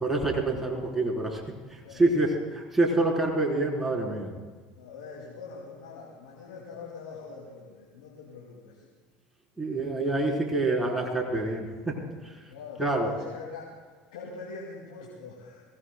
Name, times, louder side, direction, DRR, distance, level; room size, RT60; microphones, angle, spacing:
voice 1, 0.0-1.4 1.7-4.3 9.6-12.3 12.8-13.1, right 2 dB, 5° right, -3 dB, 3.8 m, -27 dB
voice 2, 4.8-8.9 12.5-13.7 14.1-15.7, left 4 dB, 85° left, -3 dB, 2.5 m, -43 dB
22.5 x 16.5 x 2.3 m, 1.4 s
hypercardioid pair, 90°, 4 cm